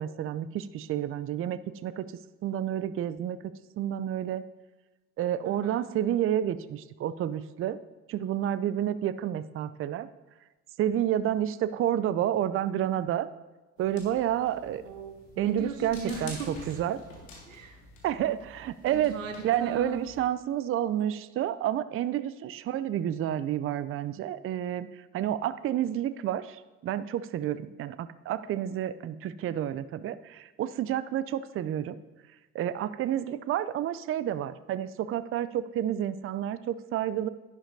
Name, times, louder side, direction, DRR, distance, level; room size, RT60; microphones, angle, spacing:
voice 1, 0.0-2.1 2.4-3.4 3.8-4.4 5.2-7.8 8.1-10.1 10.8-13.3 13.8-14.8 15.4-16.4 16.7-17.0 18.0-19.1 19.4-32.0 32.5-37.3, right 11 dB, 35° right, 15 dB, 0.5 m, -30 dB
voice 2, 5.4-5.9 14.8-16.8 17.5-17.8 18.9-20.1, right 4 dB, 90° right, 6 dB, 0.9 m, -38 dB
sound 1, 13.8-20.3, left 2 dB, 80° left, 2.2 m, -49 dB
11.0 x 10.5 x 2.7 m, 1.1 s
hypercardioid pair, 55°, 38 cm